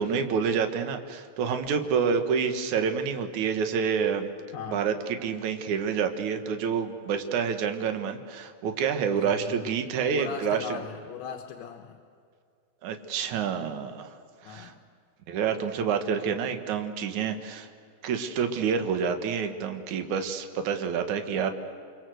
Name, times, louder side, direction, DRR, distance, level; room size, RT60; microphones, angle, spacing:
voice 1, 0.0-4.3 4.7-4.9 5.2-10.8 12.8-14.2 14.4-14.7 15.3-17.7 18.0-21.5, right 6 dB, 55° right, 6 dB, 2.4 m, -28 dB
voice 2, 4.5-4.9 9.1-9.7 10.1-12.0 14.4-14.8, left 8 dB, 80° left, 3 dB, 3.5 m, -39 dB
29.5 x 24.0 x 7.9 m, 2.3 s
omnidirectional pair, 5.1 m